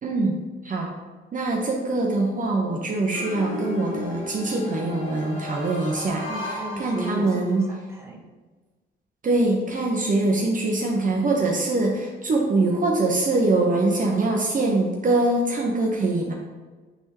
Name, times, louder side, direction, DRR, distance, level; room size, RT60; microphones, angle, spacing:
voice 1, 0.0-0.9 1.3-7.6 9.2-16.3, right 2 dB, 40° right, 0 dB, 1.0 m, -23 dB
sound 1, 3.1-7.8, left 2 dB, 85° left, 1.3 m, -34 dB
voice 2, 6.3-7.3 7.7-8.2, right 2 dB, 15° right, -1 dB, 1.3 m, -35 dB
9.5 x 3.6 x 3.0 m, 1.3 s
cardioid pair, 90°, 20 cm